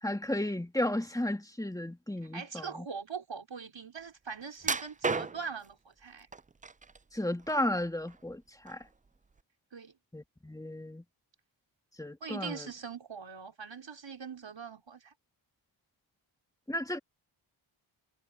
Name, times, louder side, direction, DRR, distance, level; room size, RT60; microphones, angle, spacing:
voice 1, 0.0-2.9 7.1-8.9 10.1-11.0 12.0-12.7 16.7-17.0, left 1 dB, 5° left, 2.1 m, -34 dB
voice 2, 2.3-6.3 9.7-9.9 12.2-15.1, right 6 dB, 60° right, 4.5 m, -42 dB
sound 1, 4.6-5.7 6.3-7.0 7.4-8.3 8.7-8.9 9.4-9.5, right 4 dB, 20° right, 0.3 m, -34 dB
wide cardioid pair, 90°, 50 cm